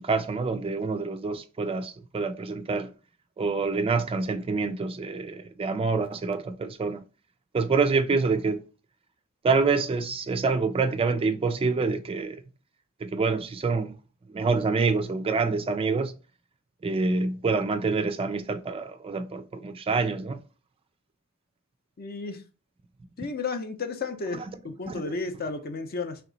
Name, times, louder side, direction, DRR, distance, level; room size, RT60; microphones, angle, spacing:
voice 1, 0.0-2.9 3.4-7.0 7.5-8.6 9.4-12.4 13.0-14.0 14.3-16.1 16.8-20.4 24.8-24.9, right 4 dB, 25° right, 0.3 m, -26 dB
voice 2, 22.0-22.4 23.2-24.4 24.6-26.2, left 4 dB, 45° left, 0.6 m, -32 dB
3.4 x 2.9 x 3.9 m
head